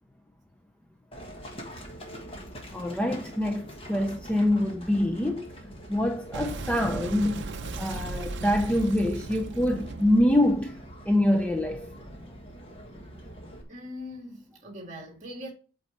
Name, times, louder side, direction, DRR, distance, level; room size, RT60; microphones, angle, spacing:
Livestock farm animals working animals, 1.1-13.6, equal, 25° left, 1.4 m, -44 dB
voice 1, 2.7-7.4 7.7-10.8 11.1-12.0, left 1 dB, 5° left, 0.4 m, -25 dB
Boom, 6.3-11.5, right 3 dB, 50° right, 0.6 m, -37 dB
voice 2, 13.7-15.5, left 1 dB, 35° right, 2.0 m, -41 dB
8.0 x 4.2 x 4.2 m
head